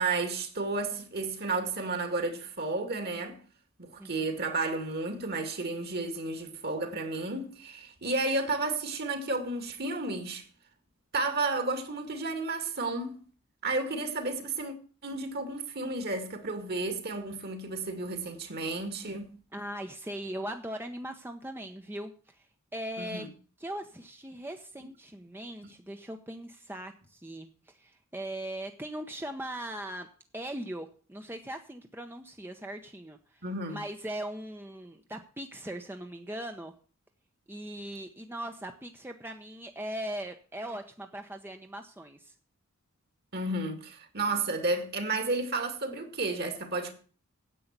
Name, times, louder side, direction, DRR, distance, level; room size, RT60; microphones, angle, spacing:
voice 1, 0.0-3.4 3.8-10.4 11.1-13.2 13.6-14.7 15.0-19.3 23.0-23.3 33.4-33.8 43.3-46.9, right 3 dB, 50° right, 2.3 m, -32 dB
voice 2, 4.0-4.5 19.5-22.4 22.7-23.3 23.6-30.1 30.3-33.2 33.7-36.7 37.5-42.3, right 1 dB, 10° right, 0.9 m, -39 dB
10.0 x 8.5 x 8.2 m
head